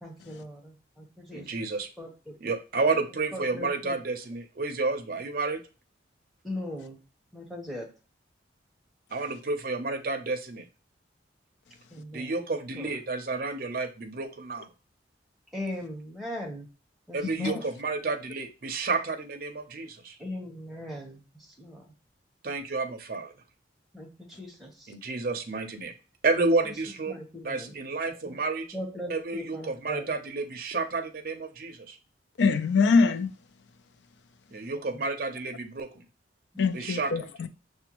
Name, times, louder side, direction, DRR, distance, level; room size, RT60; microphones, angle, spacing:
voice 1, 0.0-1.5 2.0-2.4 3.3-4.0 6.4-7.0 7.3-7.9 11.9-12.3 12.7-12.9 15.5-16.7 17.1-17.6 20.2-21.9 23.9-24.9 26.6-26.7 27.1-27.8 28.2-28.4 28.7-30.1 34.7-35.0 36.5-36.7, left 1 dB, ahead, 0.9 m, -39 dB
voice 2, 1.3-1.9 2.4-5.6 9.1-10.7 12.1-14.7 17.1-20.2 22.4-23.3 24.9-25.9 26.2-27.2 27.4-28.7 29.1-32.0 34.5-36.0 36.7-37.3, right 3 dB, 50° right, 0.5 m, -30 dB
voice 3, 32.4-33.3 36.6-37.5, left 4 dB, 70° left, 0.4 m, -24 dB
5.9 x 2.2 x 2.9 m
head